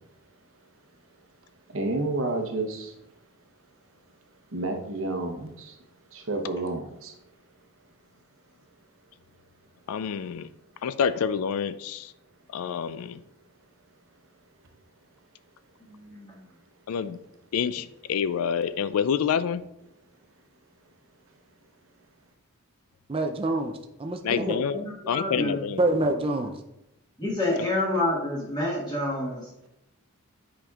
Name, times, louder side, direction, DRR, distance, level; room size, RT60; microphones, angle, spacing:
voice 1, 1.7-3.0 4.5-5.8 6.1-7.1, right 2 dB, 65° right, 3 dB, 0.8 m, -30 dB
voice 2, 9.9-10.5 10.8-12.1 12.5-13.2 16.9-17.2 17.5-19.6 24.2-24.8 25.1-25.8, left 7 dB, 75° left, 14 dB, 0.3 m, -27 dB
voice 3, 15.8-16.4 24.3-25.6 27.2-29.7, left 1 dB, 20° left, -7 dB, 1.4 m, -29 dB
voice 4, 23.1-24.6 25.8-26.5, right 2 dB, 25° right, 5 dB, 0.4 m, -26 dB
8.7 x 5.1 x 2.3 m, 0.89 s
head